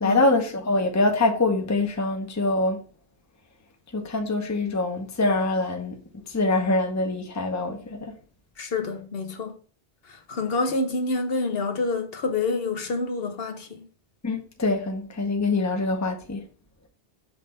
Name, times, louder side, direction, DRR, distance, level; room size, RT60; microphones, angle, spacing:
voice 1, 0.0-2.8 3.9-6.0 6.3-8.1 14.2-16.4, left 2 dB, 20° left, 0.8 m, -24 dB
voice 2, 8.6-9.6 10.0-13.9, left 3 dB, 65° left, 1.0 m, -27 dB
5.7 x 3.3 x 5.3 m
omnidirectional pair, 1.1 m